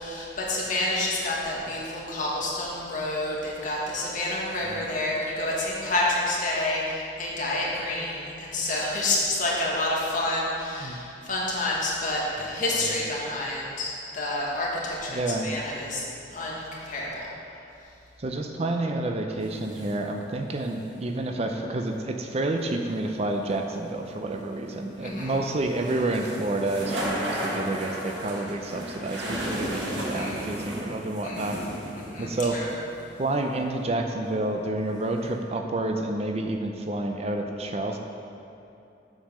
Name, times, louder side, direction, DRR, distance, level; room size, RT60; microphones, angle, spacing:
voice 1, 0.0-16.0 16.3-17.2 25.0-25.4 30.1-30.5 31.2-31.5 32.0-32.7, left 2 dB, 45° left, -4 dB, 1.6 m, -29 dB
voice 2, 15.1-15.5 18.2-31.6 32.2-32.7 33.2-38.0, right 2 dB, 35° right, 4 dB, 0.5 m, -29 dB
sound 1, 19.4-20.0 22.6-22.7 23.5-33.0 34.8-35.4, equal, 75° right, 1.5 m, -35 dB
7.2 x 5.5 x 6.3 m, 2.7 s
head